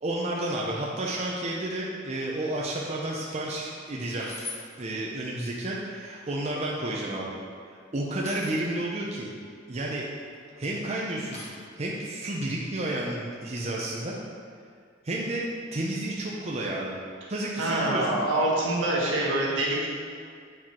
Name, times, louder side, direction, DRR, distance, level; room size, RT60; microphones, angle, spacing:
voice 1, 0.0-4.3 4.8-7.4 7.9-9.3 9.7-10.1 10.6-11.4 11.8-14.1 15.0-15.4 15.7-17.0 17.3-18.5, right 1 dB, 35° right, -3 dB, 0.7 m, -31 dB
sound 1, 2.7-3.0 3.5-3.6 4.2-4.6 5.8-6.5 8.2-8.6 10.1-10.6 11.3-11.5, left 3 dB, 35° left, 1.4 m, -42 dB
voice 2, 17.6-19.9, right 1 dB, 75° right, -4 dB, 1.6 m, -25 dB
8.2 x 4.6 x 4.4 m, 2.2 s
head